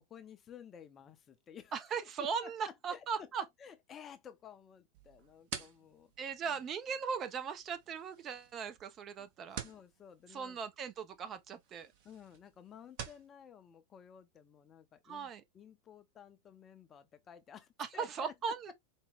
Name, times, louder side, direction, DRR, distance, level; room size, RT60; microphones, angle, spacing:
voice 1, 0.0-1.7 2.0-6.1 6.5-6.6 9.2-9.3 9.6-10.6 12.0-18.3, left 8 dB, 25° left, 0.5 m, -53 dB
voice 2, 1.7-3.4 6.2-9.6 10.3-11.9 15.0-15.4 17.8-18.7, right 6 dB, 30° right, 0.5 m, -38 dB
sound 1, 4.9-13.3, right 8 dB, 50° right, 0.9 m, -50 dB
4.4 x 2.1 x 3.4 m
figure-of-eight pair, 90°, 0 cm